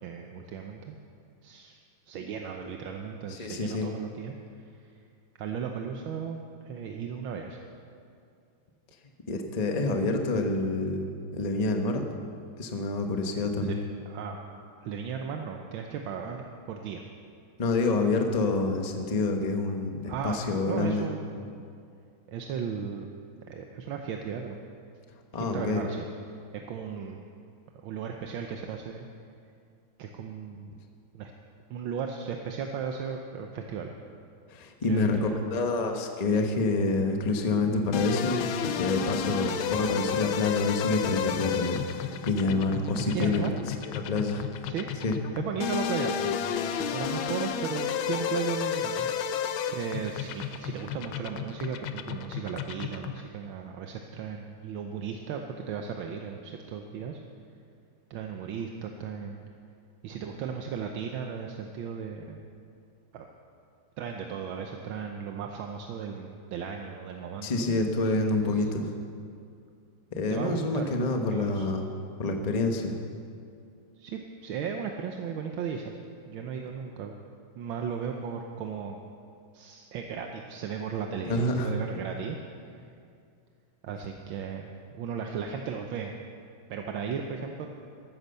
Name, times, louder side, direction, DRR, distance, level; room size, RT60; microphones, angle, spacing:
voice 1, 0.0-0.9 1.4-1.8 2.1-4.3 4.8-4.9 5.4-7.6 13.6-13.8 14.1-14.4 14.8-17.0 20.1-20.4 20.6-21.6 22.3-23.1 23.5-24.6 25.3-26.1 26.5-27.2 27.8-29.1 30.0-30.7 31.1-31.3 31.7-33.9 34.9-35.5 39.4-39.8 42.9-43.5 44.7-44.9 45.3-49.1 49.7-57.2 58.1-59.4 60.0-62.4 63.1-63.3 64.0-67.7 70.3-70.9 71.3-71.7 74.0-76.0 76.3-77.1 77.5-79.0 79.5-82.4 83.8-86.1 86.7-87.7, right 7 dB, 80° right, 3 dB, 1.6 m, -36 dB
voice 2, 3.3-3.9 9.3-12.1 12.6-13.8 17.6-21.1 25.3-25.8 34.5-38.4 38.8-43.4 43.9-44.4 45.0-45.1 67.4-68.9 70.1-71.8 72.2-72.9 81.2-81.7, left 3 dB, 30° left, 4 dB, 0.8 m, -27 dB
sound 1, 37.9-53.3, left 8 dB, 80° left, 1.5 m, -32 dB
13.5 x 12.0 x 6.8 m, 2.4 s
omnidirectional pair, 2.3 m